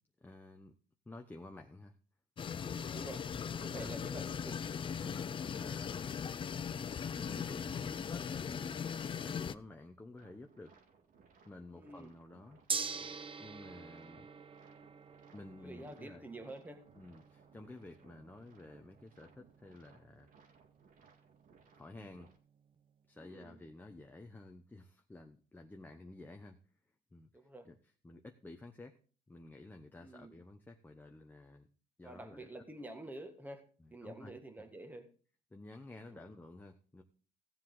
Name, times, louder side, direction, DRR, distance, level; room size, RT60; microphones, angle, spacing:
voice 1, 0.2-0.7 1.1-1.9 3.7-3.9 5.0-6.1 7.1-8.8 9.2-10.7 11.4-12.6 13.4-14.3 15.3-16.2 17.0-20.3 21.7-22.3 23.1-26.6 27.1-27.3 27.6-27.8 28.0-29.0 29.3-31.7 32.0-32.5 33.8-34.3 35.5-37.0, left 2 dB, 10° left, 0.9 m, -52 dB
sound 1, 2.4-9.5, left 7 dB, 30° left, 0.5 m, -39 dB
voice 2, 2.6-3.2 3.5-4.6 11.8-12.1 15.6-16.8 23.2-23.6 27.3-27.7 30.0-30.3 32.0-33.6 33.9-35.1 36.1-36.2, right 1 dB, 10° right, 1.7 m, -48 dB
sound 2, 10.2-22.4, right 5 dB, 55° right, 1.9 m, -65 dB
Gong, 12.7-22.9, right 5 dB, 30° right, 1.0 m, -46 dB
15.5 x 7.4 x 3.9 m
cardioid pair, 110°, 17 cm